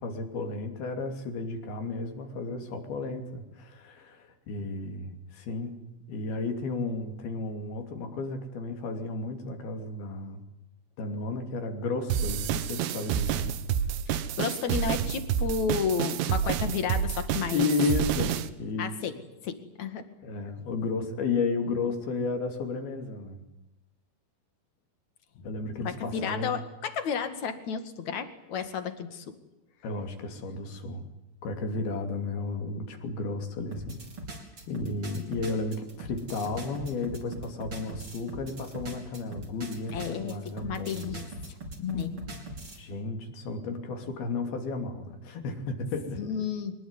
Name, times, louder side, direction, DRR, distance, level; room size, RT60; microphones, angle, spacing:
voice 1, 0.0-5.8 6.1-10.4 11.0-13.5 17.5-19.0 20.2-23.4 25.4-26.6 29.8-31.0 31.4-34.0 34.7-41.3 41.8-42.4 42.8-46.3, left 3 dB, 70° left, 5 dB, 4.7 m, -33 dB
sound 1, 12.1-18.5, right 9 dB, 90° right, 3.3 m, -29 dB
voice 2, 14.1-17.7 18.8-19.1 19.4-20.0 26.1-29.3 39.9-40.3 40.6-41.2 41.9-42.1 46.2-46.7, left 6 dB, 50° left, 9 dB, 3.0 m, -32 dB
sound 2, 33.7-42.8, right 2 dB, 35° right, 5.3 m, -41 dB
24.5 x 21.0 x 9.8 m, 0.97 s
omnidirectional pair, 4.6 m